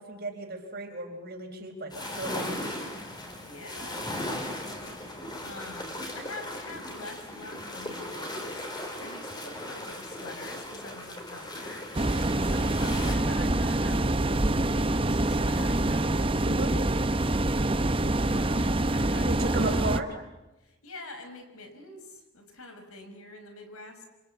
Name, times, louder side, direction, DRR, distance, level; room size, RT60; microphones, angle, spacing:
voice 1, 0.0-2.8 16.4-16.8 19.3-20.2, right 2 dB, 45° right, 4 dB, 4.3 m, -34 dB
sound 1, 1.9-13.1, left 1 dB, 20° left, 4.1 m, -38 dB
voice 2, 3.4-4.1 5.4-11.9 12.3-19.4 20.6-24.1, left 2 dB, 80° left, 6 dB, 5.6 m, -46 dB
sound 2, 11.9-20.0, right 1 dB, 25° right, 0.9 m, -26 dB
26.5 x 26.0 x 8.2 m, 1.0 s
head